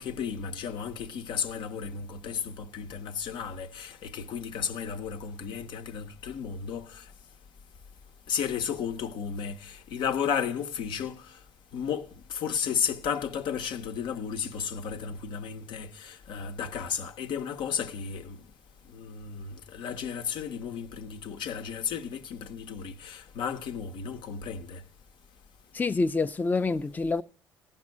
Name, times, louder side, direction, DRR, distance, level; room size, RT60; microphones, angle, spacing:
voice 1, 0.0-7.0 8.3-11.3 11.7-18.4 18.9-24.8, left 7 dB, 75° left, 0.8 m, -33 dB
voice 2, 25.7-27.2, left 3 dB, 20° left, 0.5 m, -27 dB
15.5 x 5.4 x 7.3 m
cardioid pair, 80°, 8 cm